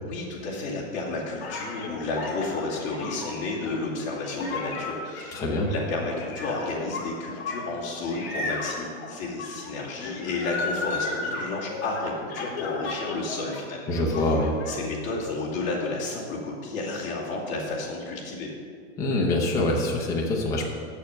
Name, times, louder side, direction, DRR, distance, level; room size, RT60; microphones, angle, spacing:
voice 1, 0.0-14.3 14.7-18.5, left 3 dB, 25° left, -7 dB, 2.5 m, -32 dB
sound 1, 1.4-13.6 13.9-14.7, left 3 dB, 45° left, 2.0 m, -34 dB
voice 2, 5.3-5.7 13.9-14.5 19.0-20.7, left 2 dB, 10° left, -2 dB, 0.5 m, -24 dB
7.2 x 7.0 x 6.4 m, 2.2 s
supercardioid pair, 165°, 41 cm